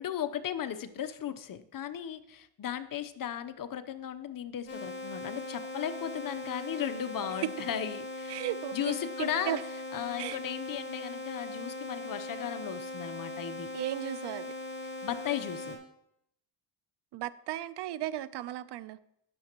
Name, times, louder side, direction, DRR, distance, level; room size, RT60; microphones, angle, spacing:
voice 1, 0.0-8.4 8.7-9.6 9.9-13.7 15.0-15.8, left 9 dB, 45° left, 0.8 m, -36 dB
sound 1, 4.7-15.8, left 2 dB, 30° left, 4.7 m, -40 dB
voice 2, 8.3-9.6 10.2-10.4 13.7-14.5 17.1-19.0, right 13 dB, 60° right, 0.7 m, -35 dB
13.0 x 10.5 x 3.0 m
cardioid pair, 95°, 46 cm